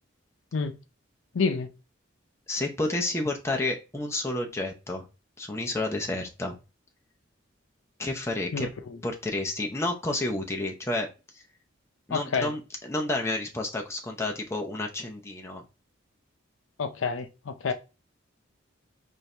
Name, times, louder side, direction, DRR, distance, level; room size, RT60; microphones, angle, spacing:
voice 1, 1.3-1.7 8.5-9.0 12.1-12.5 16.8-17.7, left 5 dB, 90° left, 0.5 m, -29 dB
voice 2, 2.5-5.0 5.4-6.6 8.0-8.7 9.0-11.1 11.3-11.4 12.1-15.6, left 2 dB, 15° left, 0.7 m, -30 dB
4.6 x 2.6 x 3.2 m
head